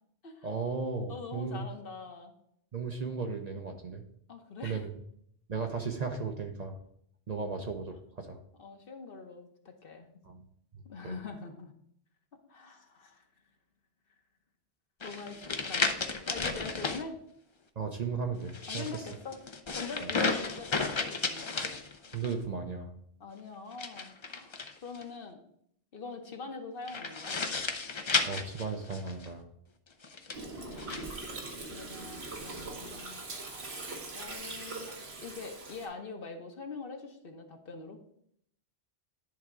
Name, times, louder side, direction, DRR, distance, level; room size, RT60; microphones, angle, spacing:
voice 1, 0.4-1.6 2.7-4.0 4.6-4.9 5.5-6.8 7.3-8.4 10.2-10.4 11.0-11.1 17.8-19.0 20.0-20.1 22.1-22.9 28.2-29.5, right 5 dB, 45° right, 4 dB, 0.7 m, -35 dB
voice 2, 1.1-2.3 4.3-4.9 8.6-10.1 10.8-11.7 12.5-13.2 15.0-16.0 16.3-17.2 18.7-19.4 19.7-21.6 23.2-24.6 24.8-25.4 25.9-27.4 30.4-33.2 34.1-38.0, left 4 dB, 60° left, 4 dB, 1.1 m, -44 dB
sound 1, 15.0-17.0 18.4-22.3 23.7-25.0 26.9-29.3 30.0-31.1, left 4 dB, 35° left, 0.5 m, -33 dB
Gurgling, 30.3-35.9, right 3 dB, 70° right, 1.5 m, -41 dB
10.5 x 3.5 x 4.8 m, 0.69 s
omnidirectional pair, 1.1 m